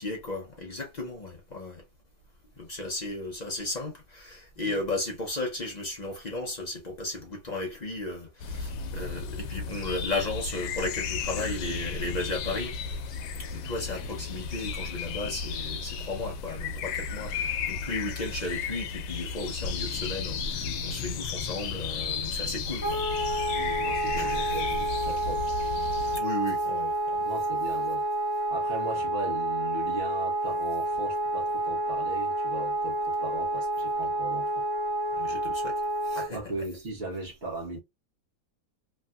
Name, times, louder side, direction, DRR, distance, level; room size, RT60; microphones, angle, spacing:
voice 1, 0.0-1.8 2.6-12.7 13.5-23.0 23.3-23.6 24.2-24.4 26.1-27.2 35.2-36.4, left 2 dB, 70° left, 0.4 m, -35 dB
sound 1, 8.4-26.2, left 5 dB, 85° left, 1.2 m, -34 dB
Wind instrument woodwind instrument, 22.8-36.3, right 2 dB, 45° left, 1.2 m, -29 dB
voice 2, 23.5-25.5 27.2-28.0 28.5-34.6 36.1-37.8, right 2 dB, 45° right, 0.8 m, -38 dB
3.2 x 2.6 x 2.2 m
omnidirectional pair, 1.8 m